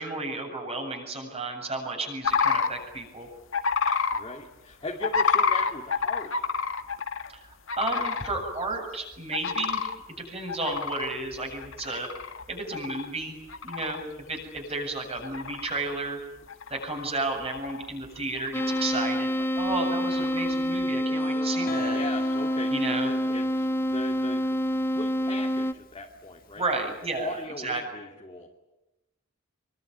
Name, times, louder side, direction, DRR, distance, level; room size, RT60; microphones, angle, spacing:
voice 1, 0.0-3.3 7.8-12.1 12.5-13.4 13.6-14.0 14.3-16.2 16.7-22.0 22.7-23.1 26.6-27.8, right 2 dB, 30° right, 3 dB, 7.8 m, -32 dB
sound 1, 2.2-2.7 3.5-4.2 5.0-7.3 7.7-8.3 8.7-8.8 9.3-9.9 10.5-12.4 12.7-13.1 13.5-14.0 14.6-14.7 15.1-15.9 16.5-17.2 17.5-18.1 18.4-18.9 20.0-20.6, left 5 dB, 70° left, 2.0 m, -28 dB
voice 2, 4.1-6.3 7.9-8.1 21.1-24.5 24.9-26.6 27.2-28.5, left 2 dB, 25° left, -1 dB, 2.8 m, -39 dB
sound 2, 18.5-25.7, equal, 10° left, 1.0 m, -27 dB
Guitar, 21.7-27.4, left 7 dB, 45° left, 2.0 m, -43 dB
26.0 x 24.0 x 9.5 m, 0.96 s
head